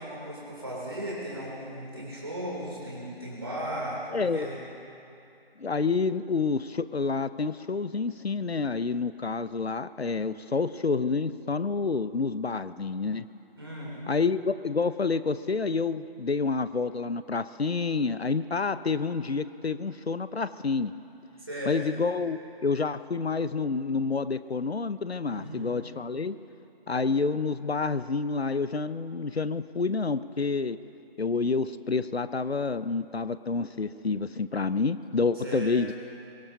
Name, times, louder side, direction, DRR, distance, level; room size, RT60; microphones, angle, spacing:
voice 1, 0.0-4.6 13.6-14.0 21.4-21.7 25.3-25.8 35.4-35.8, right 1 dB, 25° right, -6 dB, 3.1 m, -36 dB
voice 2, 4.1-4.5 5.6-13.2 14.1-20.9 21.7-26.4 26.9-30.8 31.2-35.9, left 4 dB, 80° left, 14 dB, 0.7 m, -28 dB
23.0 x 18.0 x 2.8 m, 2.7 s
figure-of-eight pair, 170°, 31 cm